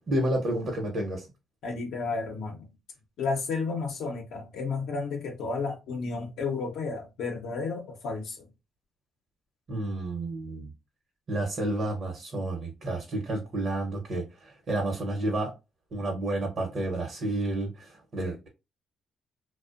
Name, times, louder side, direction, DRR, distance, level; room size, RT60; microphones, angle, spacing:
voice 1, 0.1-1.3 9.7-10.7 11.3-15.5 15.9-18.5, right 1 dB, 55° right, 0.8 m, -30 dB
voice 2, 1.6-2.7 3.2-8.5, left 4 dB, 80° left, 0.6 m, -32 dB
2.5 x 2.1 x 2.4 m
cardioid pair, 90°, 0 cm